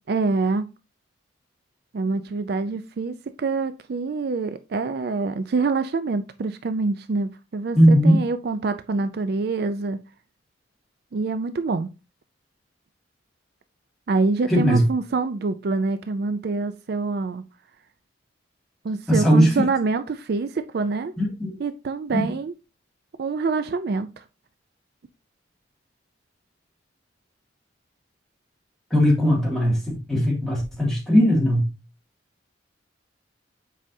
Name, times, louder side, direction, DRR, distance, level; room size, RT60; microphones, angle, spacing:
voice 1, 0.1-0.7 1.9-10.0 11.1-11.9 14.1-17.4 18.8-21.1 21.6-22.5 23.2-24.2, right 4 dB, 55° right, 0.4 m, -26 dB
voice 2, 7.8-8.2 14.5-14.9 19.1-19.6 21.2-21.5 22.1-22.2 28.9-31.7, equal, ahead, 2.2 m, -18 dB
7.4 x 4.9 x 2.7 m
head